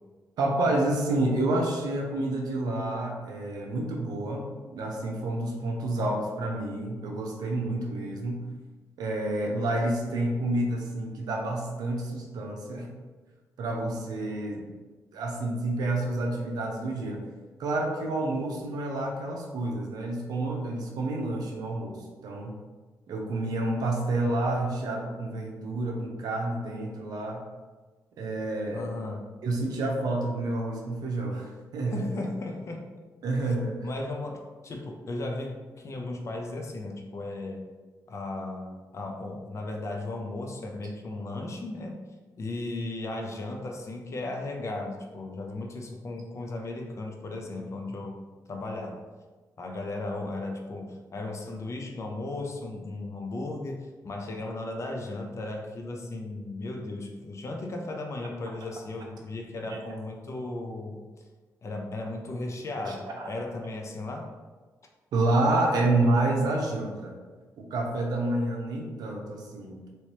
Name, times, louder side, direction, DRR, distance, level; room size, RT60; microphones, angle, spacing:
voice 1, 0.4-8.4 9.0-12.9 13.6-14.6 15.1-17.2 17.6-22.6 23.1-27.4 28.2-28.9 29.4-32.2 33.2-33.9 59.7-59.8 62.9-63.3 65.1-67.2 67.6-69.9, right 2 dB, 85° right, 1 dB, 0.6 m, -29 dB
voice 2, 5.8-6.1 28.7-29.3 31.9-32.9 33.8-37.6 38.1-42.0 42.4-48.2 48.5-49.0 49.6-61.0 61.6-64.3, left 2 dB, 50° left, 2 dB, 0.6 m, -36 dB
3.2 x 3.0 x 2.9 m, 1.3 s
cardioid pair, 85°, 7 cm